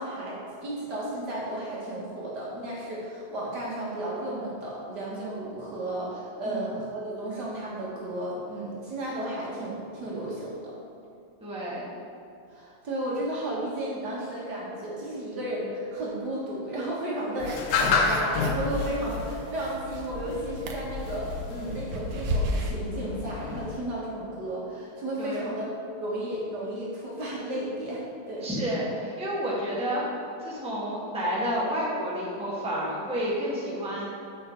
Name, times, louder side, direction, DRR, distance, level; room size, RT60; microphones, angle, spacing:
voice 1, 0.0-10.7 12.5-25.7 26.0-28.5, right 1 dB, 55° right, -6 dB, 2.0 m, -33 dB
voice 2, 11.4-11.9 25.2-25.4 28.4-30.0 30.4-34.0, equal, 5° right, -7 dB, 1.5 m, -30 dB
sound 1, 17.4-23.8, left 5 dB, 75° left, 1.6 m, -30 dB
sound 2, 17.4-18.7 19.0-20.2 20.6-22.7, right 1 dB, 85° right, 1.7 m, -33 dB
7.6 x 6.4 x 4.5 m, 2.7 s
omnidirectional pair, 2.3 m